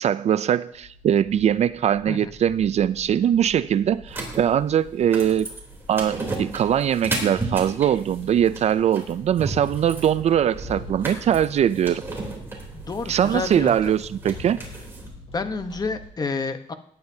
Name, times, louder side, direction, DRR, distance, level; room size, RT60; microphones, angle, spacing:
voice 1, 0.0-5.5 5.9-12.0 13.1-14.6, right 9 dB, 55° right, 15 dB, 0.4 m, -21 dB
sound 1, 0.7-16.1, left 1 dB, 45° left, 5.1 m, -46 dB
sound 2, 4.1-15.1, right 2 dB, 15° right, 3.3 m, -34 dB
voice 2, 12.9-13.9 15.3-16.7, left 4 dB, 30° left, 8 dB, 1.0 m, -29 dB
17.5 x 10.5 x 2.8 m, 0.65 s
cardioid pair, 130°, 14 cm